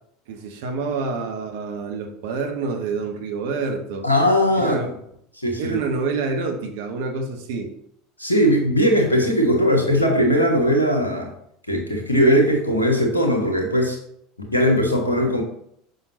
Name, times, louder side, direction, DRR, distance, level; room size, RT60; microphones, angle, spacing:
voice 1, 0.3-4.1 4.6-4.9 5.6-7.7, right 4 dB, 60° right, 4 dB, 1.0 m, -27 dB
voice 2, 4.0-4.9 5.4-5.8 8.2-11.3 11.7-14.0 14.4-15.4, equal, 85° left, 1 dB, 1.3 m, -19 dB
6.5 x 5.6 x 2.9 m, 0.70 s
figure-of-eight pair, 75°, 0 cm